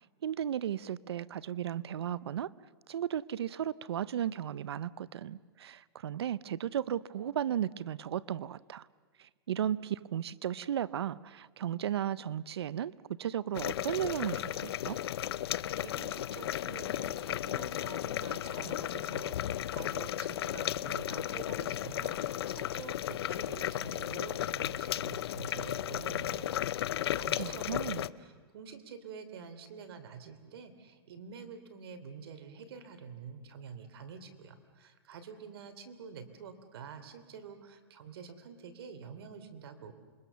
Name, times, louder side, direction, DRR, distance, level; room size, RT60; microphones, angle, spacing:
voice 1, 0.2-2.5 2.9-8.9 9.2-12.9 13.2-15.0 27.4-28.0, right 10 dB, 90° right, 0.7 m, -35 dB
sound 1, 13.5-28.1, left 12 dB, 80° left, 0.6 m, -35 dB
voice 2, 15.5-39.9, right 6 dB, 75° right, 3.0 m, -48 dB
27.5 x 23.0 x 6.9 m
hypercardioid pair, 135°, 13 cm